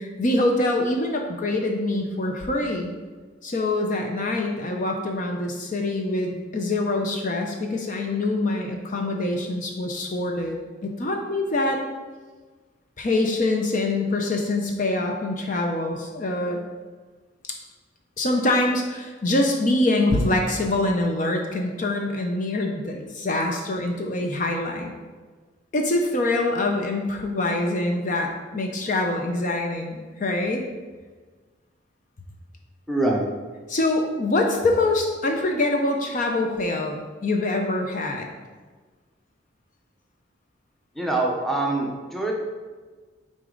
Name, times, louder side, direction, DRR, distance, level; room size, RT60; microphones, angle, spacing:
voice 1, 0.0-2.9 3.4-11.8 13.0-16.6 18.2-24.9 25.7-30.6 33.7-38.3, left 2 dB, 40° left, 2 dB, 0.5 m, -24 dB
voice 2, 32.9-33.3 40.9-42.3, right 2 dB, ahead, -2 dB, 0.7 m, -24 dB
6.4 x 4.0 x 3.8 m, 1.4 s
head